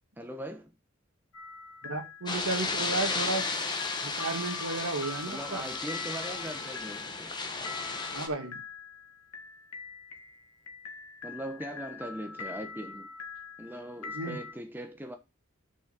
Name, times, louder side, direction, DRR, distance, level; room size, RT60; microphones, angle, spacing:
voice 1, 0.2-0.7 5.3-7.3 11.2-13.1 13.6-15.2, equal, 10° right, 1.1 m, -40 dB
sound 1, 1.3-14.5, left 4 dB, 80° left, 1.8 m, -44 dB
voice 2, 1.8-3.5 4.0-5.6 8.1-8.6 14.1-14.4, right 3 dB, 75° right, 2.0 m, -33 dB
sound 2, 2.3-8.3, left 4 dB, 20° left, 1.2 m, -34 dB
6.4 x 6.2 x 7.0 m
head